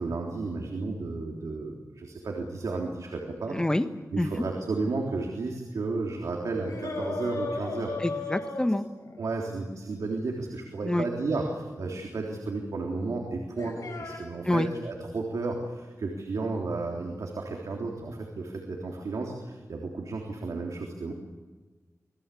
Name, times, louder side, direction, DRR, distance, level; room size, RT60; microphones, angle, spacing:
voice 1, 0.0-3.5 4.1-7.9 9.2-21.1, right 3 dB, 80° right, 0 dB, 3.5 m, -33 dB
voice 2, 3.5-3.8 4.2-4.3 8.0-8.8 10.8-11.1 14.5-14.7, left 1 dB, 15° left, 8 dB, 1.5 m, -26 dB
sound 1, 6.7-9.2 11.8-11.9 13.6-14.2, left 3 dB, 85° left, 6.6 m, -35 dB
27.0 x 20.0 x 8.5 m, 1.3 s
wide cardioid pair, 120°, 6 cm